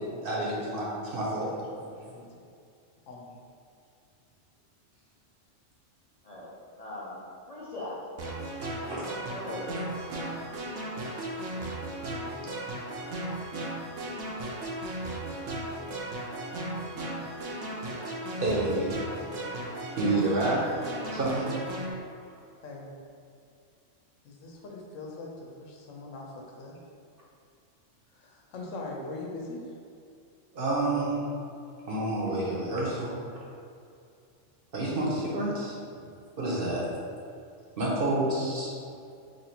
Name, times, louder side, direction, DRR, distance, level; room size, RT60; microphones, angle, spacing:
voice 1, 0.2-1.5 8.9-9.0 18.4-18.9 20.0-20.6 21.1-21.5 30.5-31.2 31.9-33.1 34.7-35.7 36.4-36.9 37.8-38.7, right 2 dB, 50° right, -5 dB, 0.9 m, -28 dB
voice 2, 1.5-2.5 3.1-3.4 10.1-10.6 22.6-22.9 24.2-26.8 28.1-29.8 36.0-36.1, left 2 dB, 90° left, -2 dB, 1.1 m, -42 dB
voice 3, 6.8-7.2 7.5-7.9 9.2-10.1 12.2-12.7, left 2 dB, 50° left, -8 dB, 0.4 m, -40 dB
sound 1, 8.2-21.9, right 1 dB, 75° right, 1.0 m, -36 dB
3.1 x 2.7 x 4.2 m, 2.5 s
omnidirectional pair, 1.3 m